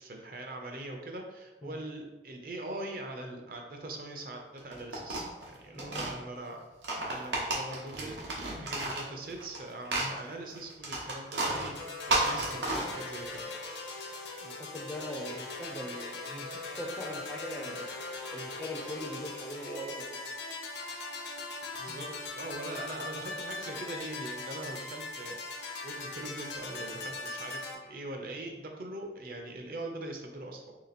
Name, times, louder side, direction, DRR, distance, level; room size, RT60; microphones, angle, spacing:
voice 1, 0.0-11.7 12.1-13.5 17.6-17.8 21.8-30.7, right 2 dB, 55° right, 2 dB, 0.6 m, -42 dB
sound 1, 4.6-6.1 6.7-9.6 9.9-13.4, right 2 dB, 90° right, 1.0 m, -32 dB
voice 2, 5.7-6.2 12.3-12.5 14.4-20.4 21.9-22.1, equal, 10° left, 0 dB, 0.3 m, -42 dB
sound 2, 11.7-27.7, left 3 dB, 75° left, 0.7 m, -40 dB
3.3 x 2.8 x 4.1 m, 1.1 s
head